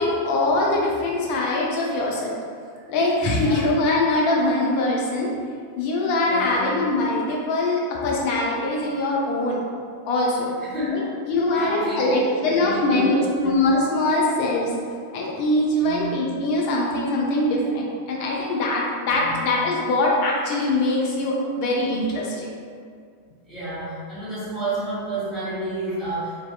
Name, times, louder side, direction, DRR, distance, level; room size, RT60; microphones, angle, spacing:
voice 1, 0.0-2.3 2.9-5.3 5.8-9.6 10.1-10.5 11.2-14.7 15.1-22.5, left 2 dB, 45° left, -3 dB, 0.5 m, -22 dB
voice 2, 6.2-6.8 10.6-11.1 11.5-13.5 15.8-16.1 19.1-19.5 23.4-26.5, right 1 dB, 5° left, -12 dB, 1.4 m, -30 dB
2.6 x 2.4 x 2.4 m, 2.1 s
figure-of-eight pair, 90°, 0 cm